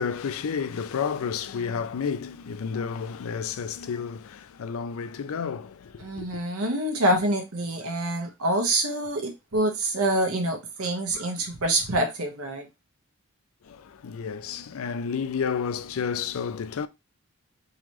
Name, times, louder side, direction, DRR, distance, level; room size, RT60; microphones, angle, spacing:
voice 1, 0.0-6.4 13.6-16.9, left 6 dB, 75° left, 0.4 m, -31 dB
voice 2, 6.0-12.7, right 1 dB, 85° right, 1.1 m, -26 dB
3.9 x 3.0 x 3.0 m
head